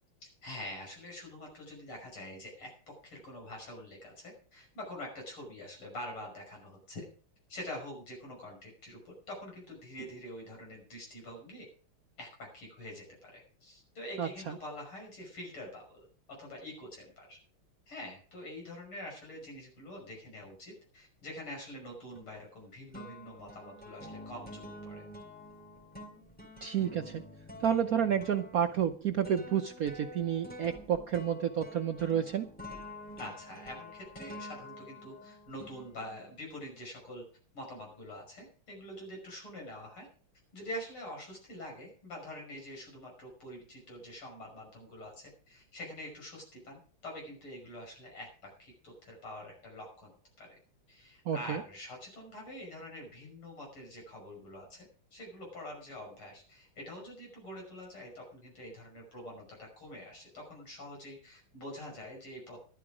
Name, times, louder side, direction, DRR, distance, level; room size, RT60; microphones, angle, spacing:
voice 1, 0.2-7.0 7.5-11.7 12.2-16.1 16.4-17.4 17.9-25.0 33.2-37.2 37.5-40.1 40.5-50.1 50.4-50.6 50.9-54.9 55.1-62.6, left 1 dB, 90° left, 0 dB, 6.6 m, -45 dB
voice 2, 14.2-14.5 26.6-27.2 27.6-32.5 51.3-51.6, right 8 dB, 70° right, 7 dB, 0.8 m, -30 dB
sound 1, 22.1-22.6 22.9-36.3, left 1 dB, 5° left, 2.8 m, -48 dB
12.5 x 12.0 x 5.0 m, 0.43 s
omnidirectional pair, 2.3 m